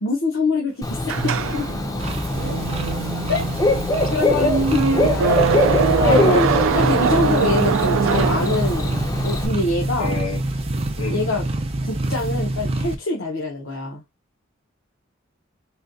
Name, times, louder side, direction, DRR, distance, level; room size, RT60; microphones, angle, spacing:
voice 1, 0.0-1.7 3.3-3.4 4.1-6.4 6.7-8.9 9.2-10.2 11.1-11.4 11.8-14.0, left 3 dB, 70° left, 0.8 m, -25 dB
Bird / Cricket, 0.8-9.5, left 1 dB, 20° left, 0.5 m, -23 dB
sound 1, 1.1-9.1, right 5 dB, 80° right, 0.4 m, -23 dB
sound 2, 2.0-12.9, right 1 dB, 30° right, 0.5 m, -26 dB
voice 2, 6.1-7.1 10.0-10.4 11.0-11.3, left 3 dB, 85° left, 1.5 m, -28 dB
4.2 x 2.2 x 2.6 m
head